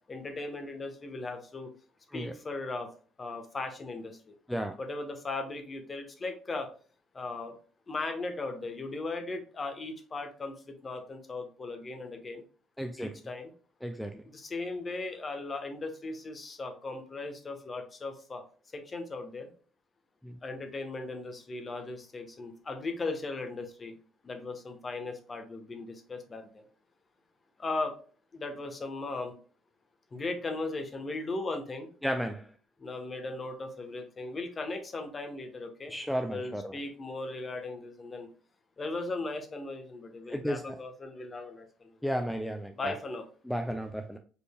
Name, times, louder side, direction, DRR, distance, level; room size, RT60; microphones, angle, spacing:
voice 1, 0.1-1.7 2.1-2.9 3.2-4.3 4.8-6.7 7.1-7.6 7.9-12.4 13.0-13.5 14.2-18.4 18.7-19.5 20.4-24.0 24.2-26.5 27.6-27.9 28.3-29.3 30.1-31.9 32.8-35.9 36.3-38.3 38.8-42.0 42.7-43.2, left 3 dB, 30° left, 1.3 m, -37 dB
voice 2, 12.8-13.2 13.8-14.2 20.2-20.4 32.0-32.5 35.9-36.8 40.3-40.8 42.0-43.0 43.5-44.2, equal, 5° left, 0.5 m, -33 dB
5.0 x 4.6 x 2.3 m
figure-of-eight pair, 50°, 0 cm